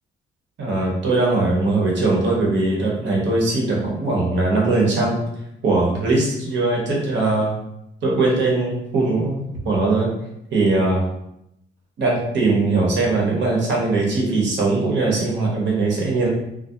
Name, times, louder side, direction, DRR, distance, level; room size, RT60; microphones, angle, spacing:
voice 1, 0.6-5.2 5.6-7.5 8.0-10.1 10.5-11.0 12.0-16.3, right 2 dB, 65° right, -3 dB, 0.9 m, -20 dB
2.3 x 2.2 x 2.7 m, 0.82 s
cardioid pair, 90°, 20 cm